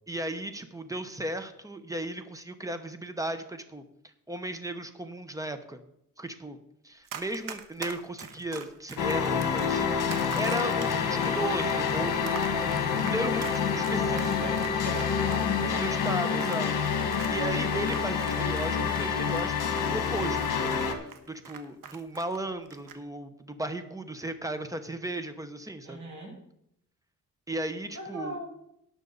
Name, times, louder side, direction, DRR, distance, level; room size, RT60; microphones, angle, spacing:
voice 1, 0.1-3.8 4.3-5.8 6.2-6.6 6.8-14.0 14.4-14.5 15.6-16.7 17.0-26.0 27.5-28.4, right 1 dB, 10° right, 9 dB, 0.9 m, -36 dB
Run, 7.1-18.7 18.9-22.4 22.7-23.0, right 7 dB, 75° right, 1.3 m, -43 dB
sound 1, 9.0-20.9, left 6 dB, 70° left, 1.7 m, -27 dB
voice 2, 12.5-13.0 14.0-16.2 17.5-17.8 25.8-26.4 27.9-28.5, right 1 dB, 60° right, -1 dB, 5.1 m, -41 dB
18.0 x 6.3 x 4.0 m, 0.76 s
wide cardioid pair, 140°, 33 cm